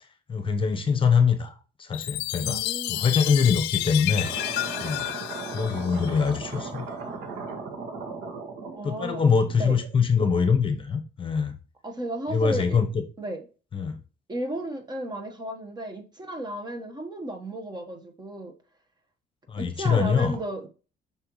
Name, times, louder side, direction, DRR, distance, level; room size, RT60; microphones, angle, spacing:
voice 1, 0.3-2.6 2.9-4.3 4.8-5.1 5.5-6.8 8.8-11.5 12.3-13.0 13.7-13.9 19.5-20.4, left 6 dB, 30° left, 1.0 m, -23 dB
Chime, 1.9-6.5, left 16 dB, 90° left, 0.5 m, -31 dB
voice 2, 2.3-3.1 8.7-9.2 9.6-9.8 11.8-12.8 13.2-13.5 14.3-18.5 19.6-20.7, right 1 dB, 25° right, 1.3 m, -34 dB
sound 1, 4.2-10.0, right 4 dB, 75° right, 1.8 m, -37 dB
7.7 x 5.9 x 3.1 m
cardioid pair, 110°, 17 cm